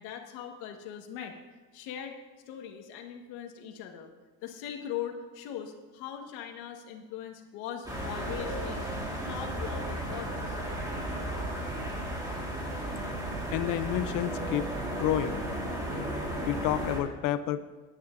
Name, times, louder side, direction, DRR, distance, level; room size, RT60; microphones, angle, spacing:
voice 1, 0.0-1.3 1.7-2.1 2.5-4.1 4.4-8.8 9.3-10.6, left 9 dB, 85° left, 3 dB, 1.7 m, -40 dB
sound 1, 7.9-17.0, right 1 dB, 10° right, 1.8 m, -34 dB
voice 2, 13.5-14.7 15.0-15.4 16.5-17.6, left 12 dB, 60° left, 13 dB, 0.7 m, -29 dB
18.5 x 9.9 x 2.6 m, 1.3 s
cardioid pair, 160°, 37 cm